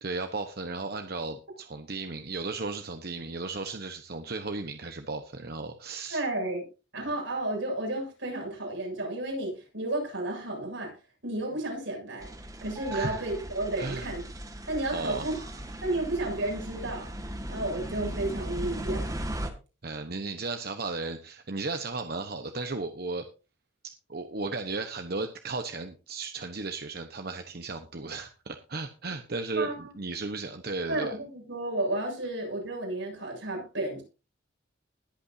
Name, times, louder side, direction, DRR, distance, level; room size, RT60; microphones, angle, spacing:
voice 1, 0.0-6.2 12.9-13.2 13.8-14.1 14.9-15.5 19.8-23.2 24.1-31.1, right 3 dB, 55° right, 7 dB, 1.1 m, -35 dB
voice 2, 6.1-6.7 6.9-10.9 11.2-12.3 12.6-14.2 14.7-15.4 15.8-17.1 17.5-19.1 29.6-29.9 30.9-34.0, right 1 dB, 80° right, 0 dB, 7.4 m, -32 dB
sound 1, 12.2-19.5, right 1 dB, 20° right, 1.7 m, -37 dB
20.5 x 8.6 x 2.7 m, 0.31 s
head